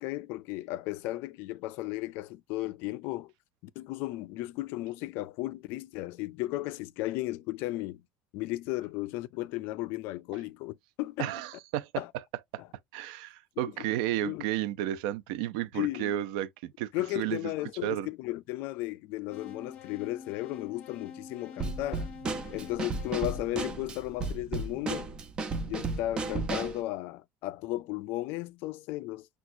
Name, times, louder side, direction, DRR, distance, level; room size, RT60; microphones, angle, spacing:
voice 1, 0.0-3.3 3.6-8.0 8.3-11.3 12.0-12.1 12.6-12.7 14.2-14.4 15.7-16.1 16.9-22.1 22.5-25.1 25.6-29.3, left 17 dB, 55° left, 0.4 m, -35 dB
voice 2, 11.2-12.0 12.5-12.6 12.9-17.5 17.8-18.1, right 13 dB, 75° right, 0.6 m, -32 dB
sound 1, 19.3-24.4, left 6 dB, 35° left, 1.0 m, -47 dB
Drum kit / Snare drum, 21.6-26.8, right 3 dB, 20° right, 0.7 m, -34 dB
6.1 x 2.4 x 2.7 m
cardioid pair, 165°, 4 cm